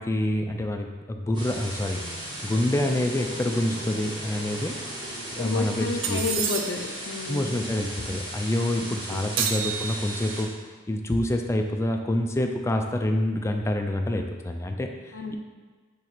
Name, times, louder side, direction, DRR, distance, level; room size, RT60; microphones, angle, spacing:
voice 1, 0.0-2.0 2.4-4.8 5.4-6.2 7.3-10.5 10.9-15.4, left 1 dB, 15° left, 4 dB, 0.3 m, -27 dB
sound 1, 1.3-10.4, right 1 dB, 25° right, 1.1 m, -37 dB
sound 2, 1.7-6.3, right 1 dB, 5° right, 0.8 m, -43 dB
voice 2, 5.4-7.7 8.0-8.1 9.1-9.3 15.1-15.4, left 3 dB, 75° left, 3 dB, 0.5 m, -31 dB
sound 3, 6.0-7.0 9.4-10.4, right 7 dB, 70° right, 0.4 m, -30 dB
4.0 x 3.0 x 4.3 m, 1.5 s
head